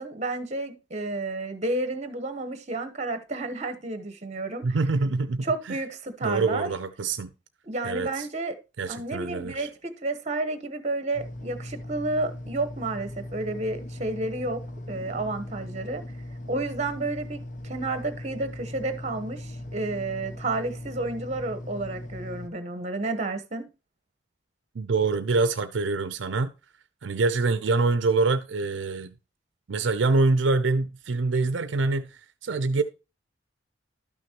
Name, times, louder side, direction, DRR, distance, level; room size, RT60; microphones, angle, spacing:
voice 1, 0.0-4.6 5.4-6.7 7.7-8.5 8.9-14.6 14.9-16.0 16.5-23.7, right 2 dB, 35° right, 1.1 m, -31 dB
voice 2, 4.6-5.8 6.2-7.3 7.8-8.3 8.8-9.7 24.7-26.5 27.0-29.2 29.7-32.8, right 3 dB, 75° right, 0.5 m, -25 dB
sound 1, 11.1-22.5, left 1 dB, 45° left, 0.8 m, -39 dB
12.0 x 6.2 x 2.9 m
head